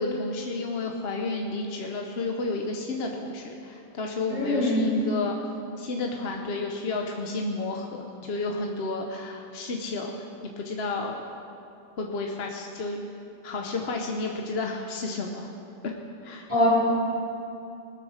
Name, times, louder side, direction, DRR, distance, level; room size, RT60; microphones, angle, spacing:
voice 1, 0.0-5.4 5.8-11.2 12.0-13.0 13.4-15.5 15.8-15.9 16.2-16.5, left 3 dB, 55° left, 1 dB, 1.0 m, -31 dB
voice 2, 4.3-4.9 16.5-16.7, equal, 20° left, -8 dB, 3.8 m, -23 dB
20.0 x 6.7 x 6.4 m, 2.7 s
omnidirectional pair, 1.4 m